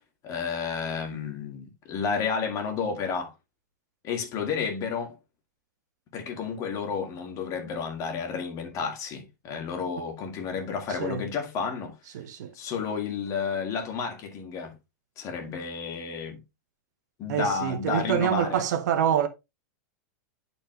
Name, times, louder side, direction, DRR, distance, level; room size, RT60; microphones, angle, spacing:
voice 1, 0.2-3.3 4.0-5.2 6.1-11.9 12.5-14.7 15.2-16.4 17.2-18.6, left 5 dB, 35° left, 2.3 m, -31 dB
voice 2, 12.1-12.5 17.3-19.3, right 9 dB, 75° right, 1.2 m, -26 dB
10.5 x 4.4 x 3.1 m
supercardioid pair, 135°, 10 cm